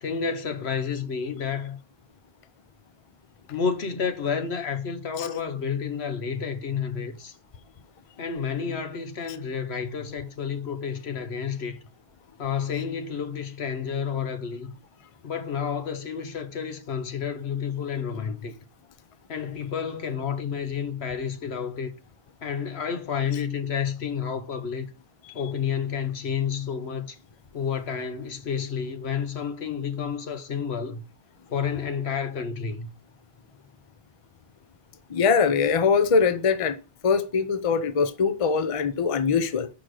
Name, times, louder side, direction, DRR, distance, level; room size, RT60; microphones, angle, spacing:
voice 1, 0.0-1.8 3.5-7.3 8.2-11.8 12.4-14.7 15.2-18.5 19.3-21.9 22.4-24.9 25.3-27.2 27.5-31.0 31.5-32.9, left 7 dB, 75° left, 1.3 m, -30 dB
voice 2, 35.1-36.8 37.0-39.7, left 5 dB, 35° left, 0.6 m, -22 dB
6.0 x 5.0 x 6.1 m
omnidirectional pair, 1.1 m